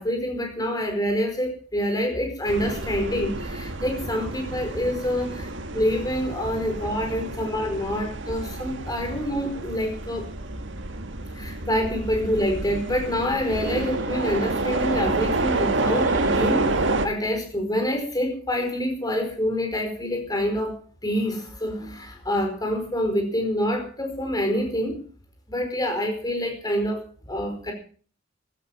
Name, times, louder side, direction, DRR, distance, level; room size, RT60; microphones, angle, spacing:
voice 1, 0.0-10.2 11.3-25.0 25.5-27.7, equal, 20° left, 4 dB, 4.8 m, -26 dB
sound 1, 2.5-17.1, right 2 dB, 70° right, 1.6 m, -29 dB
14.5 x 13.5 x 5.9 m, 0.43 s
head